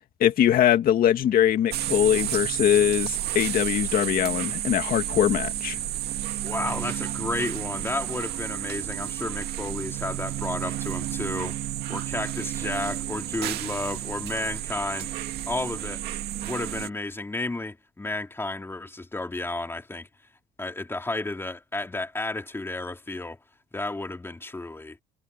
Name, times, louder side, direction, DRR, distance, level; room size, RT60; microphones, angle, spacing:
voice 1, 0.2-5.8, left 10 dB, 60° left, 2.2 m, -22 dB
sound 1, 1.7-16.9, right 13 dB, 75° right, 2.1 m, -31 dB
voice 2, 6.4-11.6 11.9-15.1 15.5-16.0 16.4-20.1 20.6-23.4 23.7-25.0, left 2 dB, 15° left, 3.5 m, -32 dB
cardioid pair, 110°, 17 cm